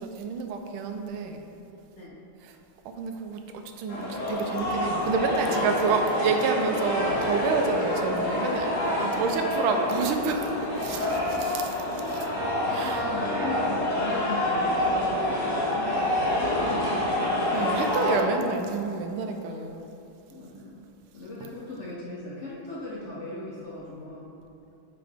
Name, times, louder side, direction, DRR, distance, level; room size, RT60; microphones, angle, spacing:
voice 1, 0.0-1.4 2.4-2.5 2.8-12.3 12.7-13.0 17.5-19.8, right 4 dB, 90° right, 5 dB, 1.5 m, -29 dB
sound 1, 3.9-18.2, left 1 dB, 40° left, 1.9 m, -27 dB
voice 2, 9.0-9.4 10.9-11.1 12.8-17.5 20.3-20.8 21.1-24.3, left 2 dB, 65° left, -6 dB, 0.7 m, -38 dB
sound 2, 12.4-14.9, equal, 65° right, 1.7 m, -39 dB
9.1 x 3.9 x 3.4 m, 2.7 s
omnidirectional pair, 2.3 m